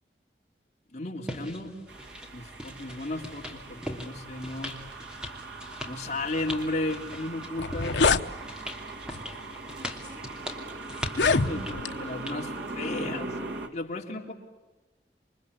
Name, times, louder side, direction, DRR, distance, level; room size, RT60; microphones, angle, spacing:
voice 1, 0.9-1.7 2.3-4.8 5.8-8.0 11.2-13.4 13.7-14.3, left 2 dB, 40° left, 0 dB, 3.3 m, -34 dB
sound 1, 1.2-12.4, left 1 dB, 5° right, 2.9 m, -41 dB
sound 2, 1.9-13.7, right 2 dB, 90° right, 2.9 m, -40 dB
sound 3, 7.1-7.2 7.5-8.3 9.1-9.3 10.0-10.1 11.0-11.9, left 4 dB, 90° left, 1.0 m, -25 dB
28.0 x 24.0 x 8.2 m, 1.2 s
head